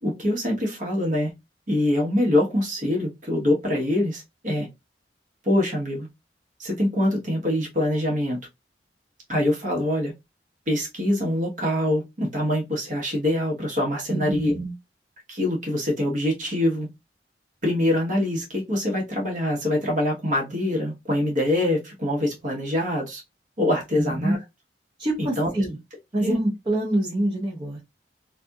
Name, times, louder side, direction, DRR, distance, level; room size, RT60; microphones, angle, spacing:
voice 1, 0.0-1.3 1.7-4.7 5.4-6.1 6.6-8.4 9.3-10.1 10.7-14.5 15.3-16.9 17.6-23.2 23.6-24.4 25.2-25.5 26.2-26.3, left 1 dB, 45° right, 1.1 m, -24 dB
voice 2, 14.1-14.7 23.9-24.4 25.0-25.8 26.1-27.8, right 1 dB, 25° right, 0.8 m, -25 dB
2.6 x 2.6 x 2.3 m
head